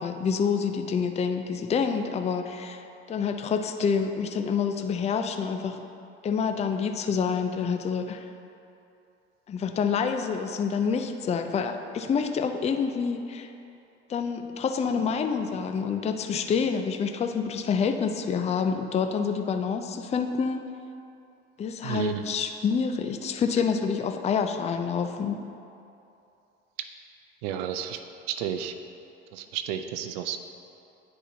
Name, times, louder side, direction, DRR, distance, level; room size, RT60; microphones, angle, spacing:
voice 1, 0.0-5.8 6.2-8.2 9.5-13.5 14.1-20.6 21.6-25.4, left 6 dB, 20° left, 7 dB, 0.4 m, -27 dB
voice 2, 21.8-22.2 27.4-28.0 28.3-28.7 29.3-30.4, right 10 dB, 80° right, 8 dB, 0.5 m, -32 dB
10.0 x 4.3 x 2.7 m, 2.7 s
hypercardioid pair, 80°, 30 cm